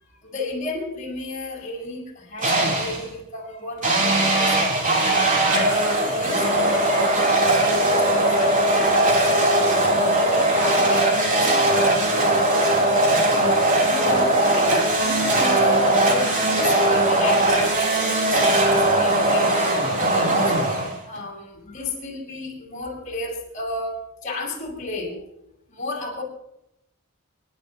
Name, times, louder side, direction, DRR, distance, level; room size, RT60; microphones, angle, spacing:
voice 1, 0.2-7.2 7.6-25.2 25.7-26.2, left 2 dB, 35° left, -3 dB, 6.7 m, -34 dB
sound 1, 2.4-3.1 3.8-21.2, right 1 dB, 40° right, 3.7 m, -19 dB
29.0 x 11.5 x 3.1 m, 0.80 s
head